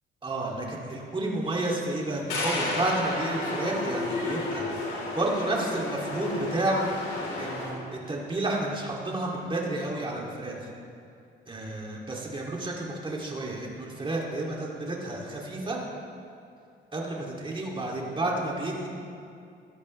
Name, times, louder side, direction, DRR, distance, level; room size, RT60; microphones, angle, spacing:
voice 1, 0.2-6.9 7.4-10.7 11.5-15.8 16.9-18.9, right 2 dB, 25° right, -2 dB, 2.4 m, -31 dB
sound 1, 2.3-7.7, left 2 dB, 80° left, 3.5 m, -32 dB
16.5 x 12.0 x 3.2 m, 2.5 s
cardioid pair, 90°, 20 cm